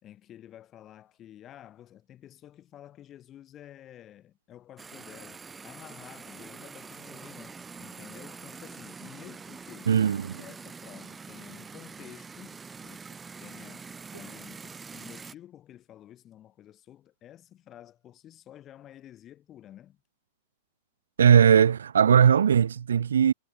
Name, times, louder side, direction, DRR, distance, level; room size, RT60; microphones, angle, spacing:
voice 1, 0.0-9.9 10.4-13.1 13.4-20.0, left 11 dB, 30° left, 5.3 m, -50 dB
sound 1, 4.8-15.4, right 5 dB, 15° right, 0.7 m, -45 dB
voice 2, 9.9-10.4 21.2-23.3, right 8 dB, 65° right, 0.4 m, -19 dB
figure-of-eight pair, 100°, 0 cm